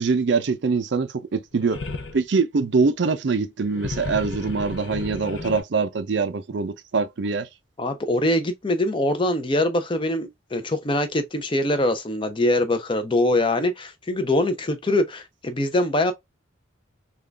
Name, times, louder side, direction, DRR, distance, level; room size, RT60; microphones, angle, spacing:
voice 1, 0.0-1.8 2.1-7.5, right 4 dB, 60° right, 0.5 m, -23 dB
sound 1, 1.6-2.2 3.6-5.6, left 3 dB, 70° left, 0.7 m, -33 dB
voice 2, 7.8-16.1, left 1 dB, 25° left, 0.5 m, -23 dB
3.7 x 2.3 x 3.3 m
head